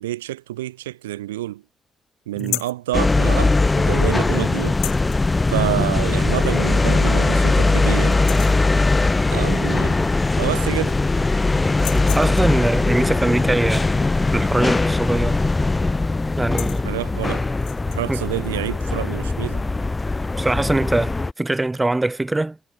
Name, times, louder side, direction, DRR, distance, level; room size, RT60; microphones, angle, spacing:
voice 1, 0.0-1.6 2.3-4.8 5.5-8.2 9.3-10.0 10.4-11.0 16.8-17.5 17.9-19.6, right 15 dB, 85° right, 0.7 m, -28 dB
sound 1, 2.4-2.8 4.7-5.2 6.6-6.7 7.1-7.2 7.6-7.9 8.1-8.7 10.0-10.1 10.4-11.1 11.7-12.6 15.0-15.3 15.6-15.8 16.3-16.9 17.5-18.0, left 23 dB, 75° left, 0.5 m, -33 dB
sound 2, 2.9-21.3, left 3 dB, 25° left, 0.8 m, -20 dB
voice 2, 11.9-13.9 14.3-15.4 16.4-16.8 18.1-18.2 20.4-22.6, right 2 dB, 20° right, 1.6 m, -22 dB
hypercardioid pair, 40°, 0 cm